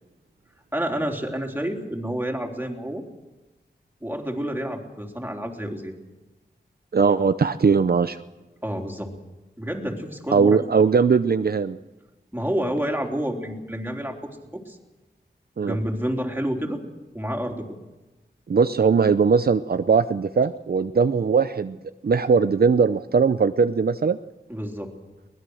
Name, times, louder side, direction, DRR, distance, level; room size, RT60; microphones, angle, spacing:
voice 1, 0.7-3.0 4.0-5.9 8.6-9.1 9.6-10.6 12.3-14.8 15.6-16.8 17.1-17.7 24.5-24.9, equal, 10° right, 1 dB, 3.7 m, -29 dB
voice 2, 6.9-8.2 10.3-11.8 15.6-15.8 18.5-21.8 22.0-24.2, right 5 dB, 60° right, 10 dB, 0.6 m, -20 dB
23.0 x 20.0 x 6.4 m, 1.1 s
wide cardioid pair, 85°, 18 cm